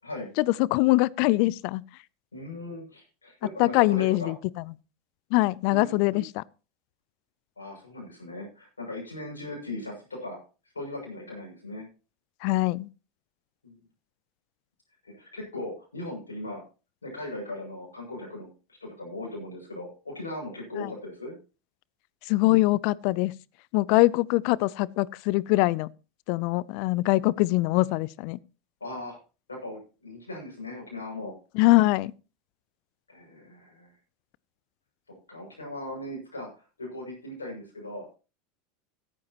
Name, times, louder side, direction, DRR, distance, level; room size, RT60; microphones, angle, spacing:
voice 1, 0.4-1.8 3.6-4.4 5.3-6.2 12.4-12.9 20.8-20.9 22.3-23.3 23.7-25.9 26.3-28.4 31.5-32.1, left 20 dB, 55° left, 0.5 m, -23 dB
voice 2, 2.3-4.3 5.7-6.2 7.6-10.4 10.7-11.8 13.6-13.8 15.0-16.6 17.0-18.5 18.8-21.3 28.8-29.2 29.5-31.3 33.1-33.9 35.1-38.1, left 1 dB, 85° left, 6.4 m, -38 dB
16.5 x 9.8 x 2.9 m
figure-of-eight pair, 85°, 0 cm